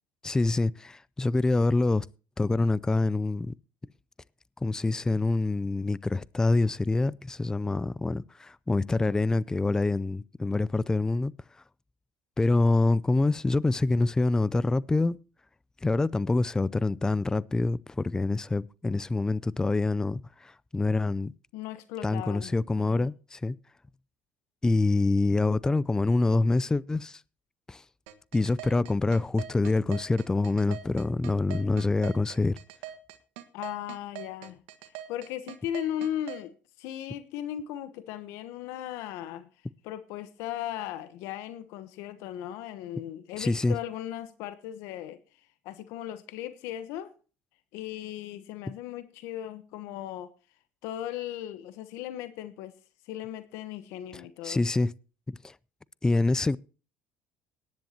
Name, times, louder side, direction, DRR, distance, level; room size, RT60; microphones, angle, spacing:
voice 1, 0.2-2.1 2.4-3.5 4.6-11.3 12.4-15.2 15.8-21.3 22.0-23.6 24.6-27.2 27.7-27.8 28.3-32.6 43.4-43.8 54.4-54.9 55.3-55.5 56.0-56.6, left 2 dB, 15° left, 0.4 m, -26 dB
voice 2, 21.5-23.1 33.5-34.6 35.1-39.5 39.8-45.2 45.6-47.1 47.7-50.3 50.8-52.7 53.1-54.6, left 11 dB, 75° left, 1.0 m, -37 dB
sound 1, 28.1-36.4, right 12 dB, 85° right, 1.5 m, -42 dB
17.5 x 10.5 x 2.9 m
supercardioid pair, 90°, 5 cm